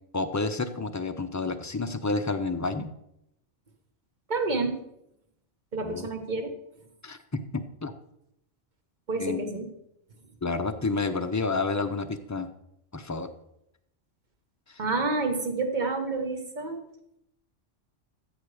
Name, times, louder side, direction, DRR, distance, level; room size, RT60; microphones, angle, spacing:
voice 1, 0.1-2.9 5.8-6.1 7.0-7.9 9.2-9.4 10.4-12.5 12.9-13.3 14.7-14.8, left 3 dB, 25° left, 7 dB, 0.3 m, -30 dB
voice 2, 4.3-4.8 5.7-6.5 9.1-9.7 14.8-16.8, right 3 dB, 40° right, 5 dB, 1.4 m, -29 dB
14.0 x 7.2 x 4.9 m, 0.80 s
omnidirectional pair, 1.3 m